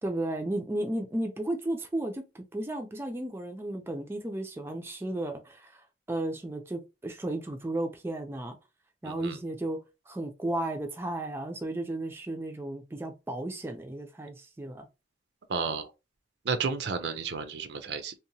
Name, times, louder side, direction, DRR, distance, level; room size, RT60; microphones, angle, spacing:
voice 1, 0.0-2.2 2.5-8.6 9.0-9.8 10.1-14.9, right 1 dB, 15° right, 0.3 m, -34 dB
voice 2, 9.0-9.4 15.5-15.9 16.4-18.1, right 5 dB, 75° right, 0.4 m, -32 dB
2.8 x 2.1 x 2.6 m
head